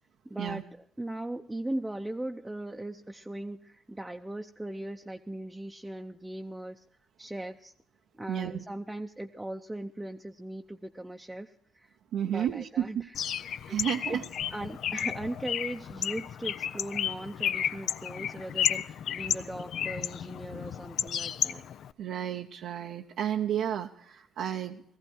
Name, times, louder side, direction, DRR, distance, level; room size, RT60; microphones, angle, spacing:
voice 1, 0.2-6.8 7.2-7.7 8.1-12.0 12.2-13.1 13.7-13.8 14.1-14.2 14.5-21.6, right 1 dB, 10° right, 3 dB, 0.7 m, -39 dB
voice 2, 8.3-8.6 12.1-13.0 13.7-14.2 22.0-24.8, right 10 dB, 80° right, 2 dB, 0.7 m, -32 dB
Bird, 13.1-21.9, left 9 dB, 70° left, 0.5 m, -33 dB
17.5 x 14.5 x 4.5 m, 0.71 s
cardioid pair, 90°, 0 cm